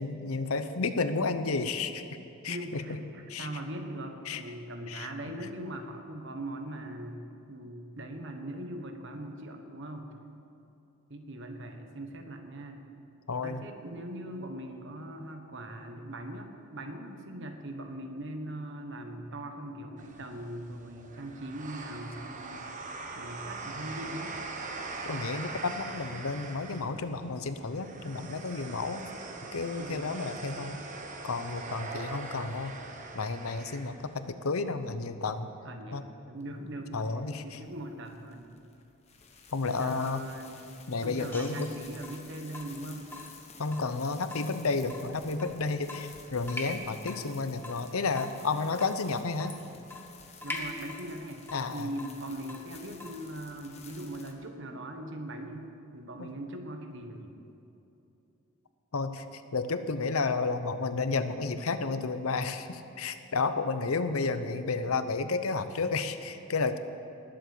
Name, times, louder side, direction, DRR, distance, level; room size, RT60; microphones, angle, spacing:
voice 1, 0.0-2.0 2.4-3.0 3.3-3.5 4.3-4.4 4.9-5.1 13.3-13.6 25.0-29.1 29.5-30.8 31.2-32.7 33.1-35.5 35.9-36.0 36.9-37.6 39.5-40.2 40.9-41.7 43.6-49.6 51.5-51.9 56.2-56.3 58.9-66.8, left 4 dB, 85° left, 11 dB, 0.8 m, -31 dB
voice 2, 2.5-7.2 7.5-10.2 11.1-12.8 13.4-22.7 23.2-24.4 29.8-30.1 35.6-36.0 36.3-37.0 37.4-38.4 39.7-40.6 41.0-43.1 43.6-43.9 50.4-51.5 51.7-57.3, right 1 dB, 60° right, 5 dB, 1.4 m, -40 dB
sound 1, 20.0-34.2, right 3 dB, 35° right, 1.2 m, -42 dB
sound 2, 36.4-54.3, left 5 dB, 30° left, 1.3 m, -53 dB
Water tap faucet / Drip, 41.3-53.3, left 2 dB, 10° left, 1.2 m, -44 dB
19.5 x 7.8 x 6.7 m, 2.8 s
head